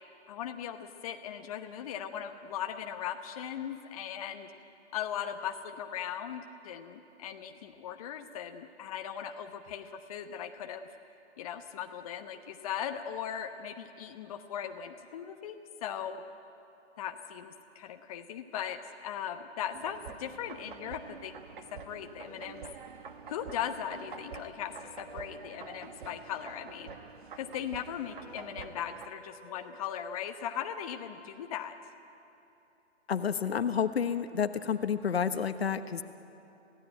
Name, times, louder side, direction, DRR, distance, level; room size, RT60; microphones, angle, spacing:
voice 1, 0.3-4.5 4.9-10.9 11.4-16.2 17.0-21.3 21.7-22.7 23.3-27.0 27.3-31.7, left 9 dB, 30° left, 5 dB, 1.1 m, -38 dB
sound 1, 19.7-29.1, right 6 dB, 45° right, 1.5 m, -47 dB
sound 2, 28.0-30.3, left 1 dB, 5° left, 2.5 m, -56 dB
voice 2, 33.1-36.0, left 7 dB, 60° left, 10 dB, 1.3 m, -30 dB
27.5 x 16.5 x 9.1 m, 2.8 s
figure-of-eight pair, 145°, 36 cm